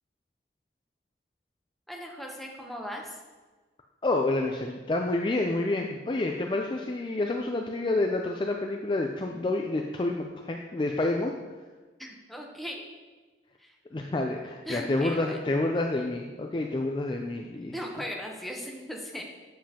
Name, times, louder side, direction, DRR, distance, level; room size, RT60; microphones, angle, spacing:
voice 1, 1.9-3.2 12.0-12.8 13.6-13.7 14.7-15.4 17.7-19.2, equal, ahead, -1 dB, 0.8 m, -38 dB
voice 2, 4.0-11.3 13.9-17.7, left 2 dB, 25° left, 2 dB, 0.3 m, -28 dB
7.4 x 7.3 x 2.9 m, 1.3 s
head